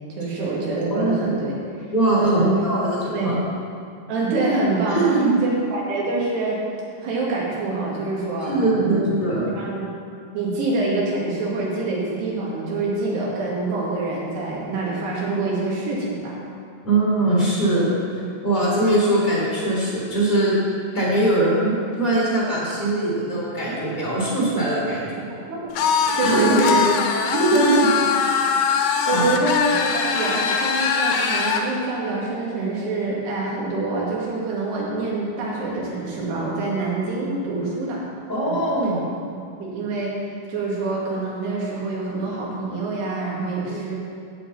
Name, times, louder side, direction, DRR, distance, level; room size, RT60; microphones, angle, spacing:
voice 1, 0.1-1.5 2.2-2.6 3.1-3.4 4.1-5.0 5.4-6.6 7.0-9.1 9.6-9.9 10.3-16.4 25.5-25.6 26.2-26.8 27.3-27.8 29.1-38.0 38.4-38.6 39.3-40.1 40.5-43.9, right 3 dB, 80° right, -5 dB, 4.3 m, -25 dB
voice 2, 0.9-1.4 1.9-3.4 4.9-5.4 8.5-9.5 16.8-20.6 20.9-25.1 26.2-26.4 27.6-27.7 29.1-29.2 29.8-29.9 38.3-39.1 43.7-43.9, right 1 dB, 10° left, -7 dB, 2.9 m, -22 dB
sound 1, 25.8-31.7, left 6 dB, 80° left, 2.7 m, -22 dB
8.5 x 7.9 x 8.5 m, 2.4 s
omnidirectional pair, 4.7 m